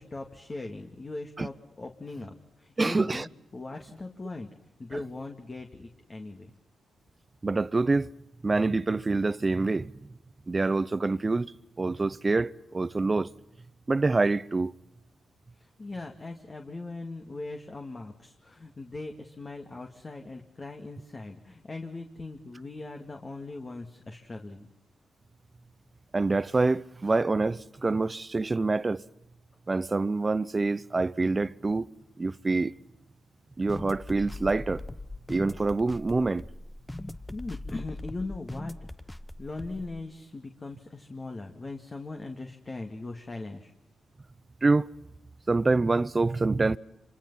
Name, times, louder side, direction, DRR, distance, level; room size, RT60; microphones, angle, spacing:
voice 1, 0.0-4.5 4.8-6.5 15.6-24.7 37.3-38.9 39.4-43.7, left 3 dB, 35° left, 2.3 m, -40 dB
voice 2, 2.8-3.3 4.9-5.0 7.4-8.1 8.4-9.9 10.5-13.3 13.9-14.7 26.1-29.0 29.7-31.9 32.2-32.7 33.6-34.8 35.3-36.4 44.6-44.9 45.5-46.8, right 3 dB, 30° right, 0.7 m, -26 dB
sound 1, 33.7-40.0, left 1 dB, 10° left, 1.0 m, -40 dB
27.0 x 25.0 x 5.7 m
cardioid pair, 65°, 0 cm